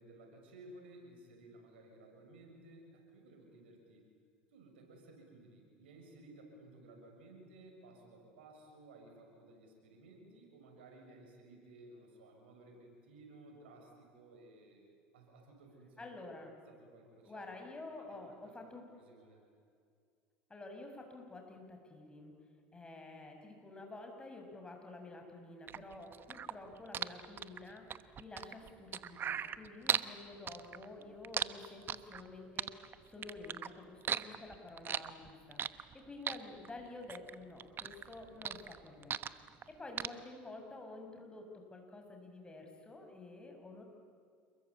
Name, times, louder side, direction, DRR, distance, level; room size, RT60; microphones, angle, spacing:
voice 1, 0.0-4.0 4.5-14.9 15.1-16.1 16.7-17.4 18.2-18.3 18.9-19.4, right 2 dB, 90° right, 2 dB, 6.7 m, -57 dB
voice 2, 16.0-16.5 17.2-18.8 20.5-22.3 22.7-35.6 35.9-39.2 39.7-43.8, left 2 dB, 15° left, 3 dB, 6.6 m, -50 dB
sound 1, 25.7-30.1 30.5-32.3 32.6-33.7 34.0-35.9 36.3-37.3 37.6-39.7 40.0-40.1, right 8 dB, 40° right, 1.1 m, -37 dB
28.5 x 22.0 x 8.6 m, 2.2 s
hypercardioid pair, 85°, 6 cm